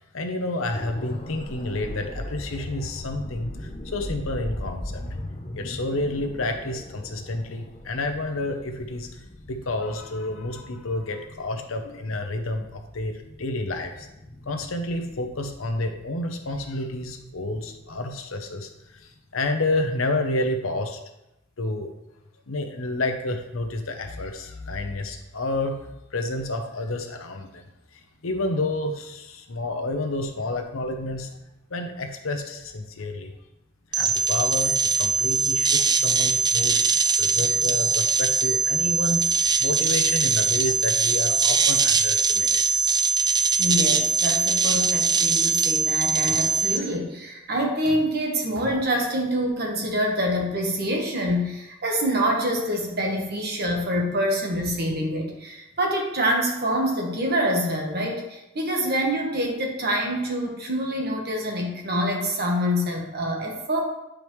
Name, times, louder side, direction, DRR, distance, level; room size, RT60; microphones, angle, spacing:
voice 1, 0.1-5.0 5.5-9.1 9.5-14.1 14.5-21.0 21.6-21.9 22.5-25.8 26.1-27.6 27.9-31.3 31.7-33.3 33.9-36.8 37.2-39.3 39.6-42.6, left 2 dB, 80° left, 4 dB, 0.8 m, -29 dB
sound 1, 0.7-18.6 19.0-19.1, left 1 dB, 30° left, 0.7 m, -39 dB
sound 2, 33.9-46.8, right 5 dB, 20° right, 0.3 m, -22 dB
voice 2, 43.6-63.8, equal, 50° right, 1 dB, 1.3 m, -26 dB
8.8 x 5.0 x 3.2 m, 0.92 s
head